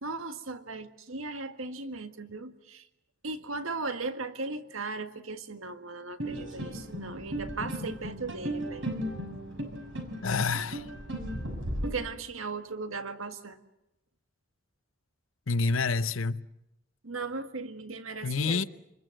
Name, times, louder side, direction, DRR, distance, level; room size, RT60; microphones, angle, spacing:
voice 1, 0.0-2.8 3.2-8.9 11.8-13.6 17.0-18.7, right 3 dB, 85° right, 1.8 m, -37 dB
sound 1, 6.2-11.9, right 1 dB, 65° right, 6.1 m, -36 dB
voice 2, 10.2-10.9 15.5-16.4 18.2-18.6, left 4 dB, 80° left, 0.8 m, -28 dB
27.5 x 21.5 x 7.7 m
head